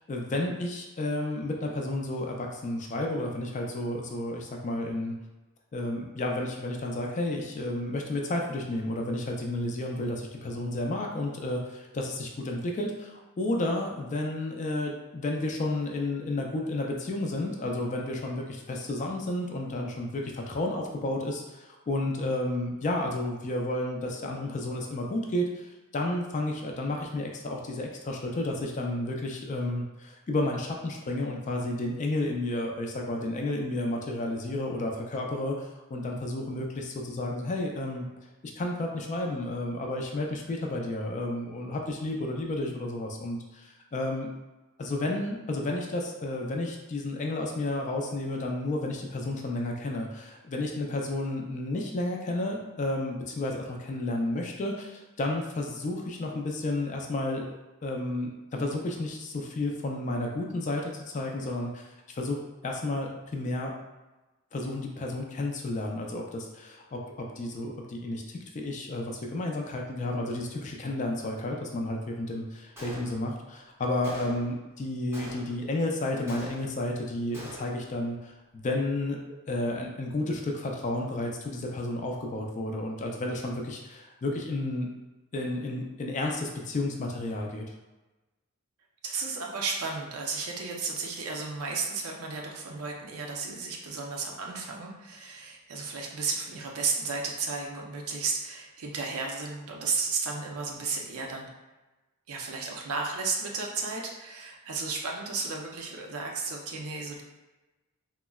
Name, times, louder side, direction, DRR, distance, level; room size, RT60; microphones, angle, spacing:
voice 1, 0.1-5.1 5.7-38.1 38.6-44.3 44.8-57.4 57.8-61.9 62.2-62.4 62.6-63.7 64.5-68.2 68.5-79.2 79.5-84.9 85.3-87.7, left 1 dB, 35° left, 0 dB, 0.3 m, -31 dB
Gunshot gunfire, 72.8-73.5 74.0-74.6 75.1-75.7 76.3-76.9 77.3-77.9, equal, 10° right, 0.6 m, -44 dB
voice 2, 89.0-101.5 102.3-107.2, right 4 dB, 70° right, 0 dB, 0.5 m, -33 dB
3.6 x 2.0 x 2.3 m, 1.1 s
head